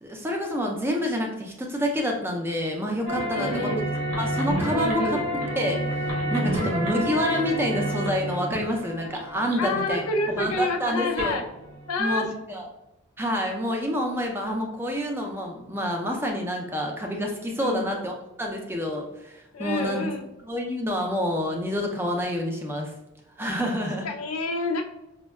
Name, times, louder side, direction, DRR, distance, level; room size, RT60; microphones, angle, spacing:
voice 1, 0.0-3.7 4.2-5.2 5.6-5.8 6.3-10.0 10.4-11.4 12.0-12.7 13.2-20.1 20.5-22.9 23.4-24.1, equal, 10° right, 1 dB, 0.4 m, -28 dB
sound 1, 3.1-12.0, right 1 dB, 80° right, 0.8 m, -30 dB
voice 2, 3.3-3.9 4.7-5.2 6.5-6.8 9.5-11.4 11.9-12.3 17.6-17.9 19.5-20.3 24.0-24.8, left 2 dB, 90° left, 4 dB, 0.5 m, -28 dB
5.1 x 2.2 x 2.2 m, 0.95 s
head